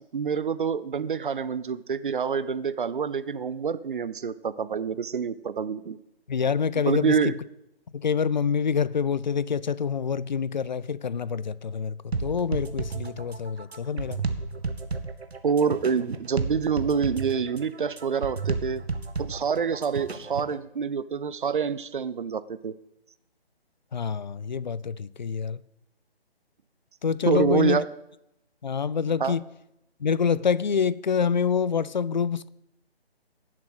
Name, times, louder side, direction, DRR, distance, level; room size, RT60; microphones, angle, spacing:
voice 1, 0.0-6.0 6.9-7.3 15.4-18.8 19.2-22.7 27.3-27.9 29.2-29.4, right 6 dB, 50° right, 0.6 m, -27 dB
voice 2, 6.3-7.3 7.9-14.2 23.9-25.6 27.0-27.8 28.6-29.4 30.0-32.5, left 6 dB, 45° left, 0.4 m, -26 dB
sound 1, 12.1-20.6, right 4 dB, 80° right, 1.3 m, -32 dB
11.0 x 7.5 x 7.9 m
figure-of-eight pair, 150°, 32 cm